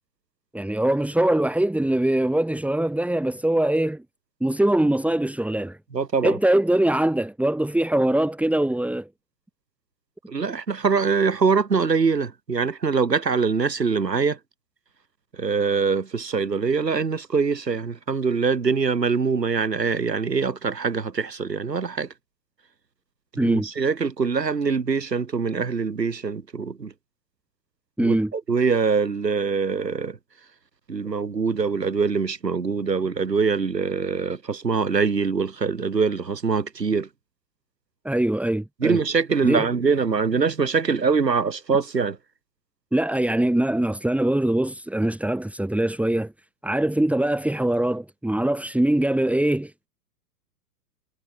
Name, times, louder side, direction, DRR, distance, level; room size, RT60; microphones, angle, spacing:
voice 1, 0.5-4.0 4.4-5.8 6.2-9.1 23.4-23.7 28.0-28.3 38.0-39.0 39.4-39.7 42.9-46.3 46.6-49.9, right 1 dB, 5° right, 6.6 m, -22 dB
voice 2, 5.9-6.4 10.3-14.4 15.4-22.1 23.3-26.9 28.0-30.2 30.9-37.1 38.8-42.2, right 5 dB, 90° right, 6.0 m, -23 dB
hypercardioid pair, 110°, 48 cm